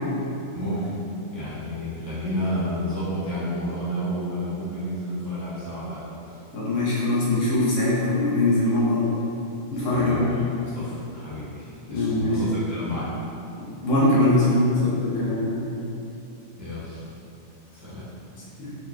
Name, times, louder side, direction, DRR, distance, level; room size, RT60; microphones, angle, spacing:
voice 1, 0.5-0.9 1.3-6.3 9.9-13.1 16.6-17.0 17.7-18.1, equal, 20° right, -12 dB, 0.5 m, -31 dB
voice 2, 6.5-9.1 9.7-10.3 11.9-12.5 13.6-15.6 18.6-18.7, left 1 dB, 75° left, -7 dB, 1.2 m, -22 dB
3.7 x 3.1 x 2.3 m, 2.8 s
omnidirectional pair, 1.3 m